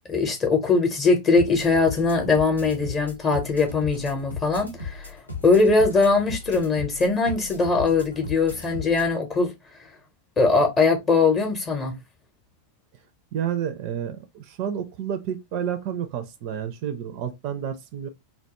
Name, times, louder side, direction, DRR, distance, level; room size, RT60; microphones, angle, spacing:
voice 1, 0.1-5.2 5.4-9.5 10.4-12.0, left 4 dB, 25° left, 0.6 m, -21 dB
sound 1, 1.4-9.1, left 4 dB, 85° left, 0.6 m, -36 dB
voice 2, 13.3-18.1, right 9 dB, 45° right, 0.4 m, -30 dB
2.2 x 2.1 x 2.8 m
figure-of-eight pair, 90°, 0 cm